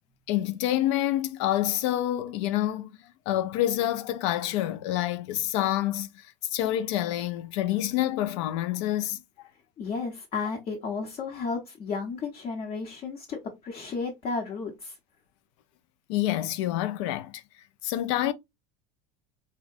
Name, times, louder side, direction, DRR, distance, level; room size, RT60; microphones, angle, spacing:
voice 1, 0.3-2.9 3.3-6.1 6.5-9.2 16.1-17.4 17.8-18.3, left 13 dB, 80° left, 0.4 m, -27 dB
voice 2, 9.8-15.0, left 4 dB, 40° left, 0.8 m, -33 dB
3.8 x 2.1 x 2.4 m
supercardioid pair, 130°, 15 cm